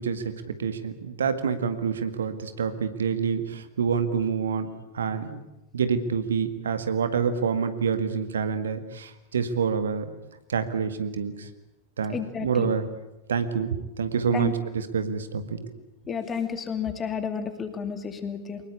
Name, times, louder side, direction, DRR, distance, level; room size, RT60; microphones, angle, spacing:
voice 1, 0.0-4.7 4.9-5.4 5.7-10.1 10.5-11.5 12.0-12.9 13.3-15.7, right 6 dB, 65° right, 10 dB, 1.9 m, -27 dB
voice 2, 12.1-12.7 14.3-14.5 16.1-18.6, left 6 dB, 20° left, 8 dB, 2.7 m, -31 dB
24.0 x 21.0 x 8.4 m, 0.95 s
figure-of-eight pair, 90°, 0 cm